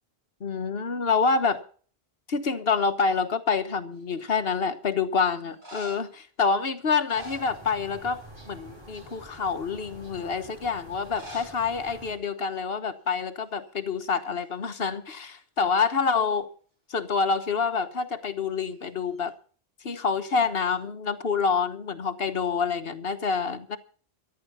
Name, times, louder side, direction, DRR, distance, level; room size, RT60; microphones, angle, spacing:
voice 1, 0.4-1.6 2.3-8.2 8.5-16.5 16.9-19.3 19.8-23.8, left 5 dB, 65° left, 1.5 m, -27 dB
sound 1, 4.0-4.5 5.4-6.2 6.9-8.1 8.4-8.7 9.3-9.4 11.0-11.6 11.9-12.0 12.2-12.3 13.0-13.2 13.5-14.7 18.7-19.3, equal, 45° right, 6.9 m, -45 dB
sound 2, 7.1-12.2, right 1 dB, 25° right, 5.1 m, -47 dB
14.0 x 12.0 x 5.7 m
omnidirectional pair, 1.1 m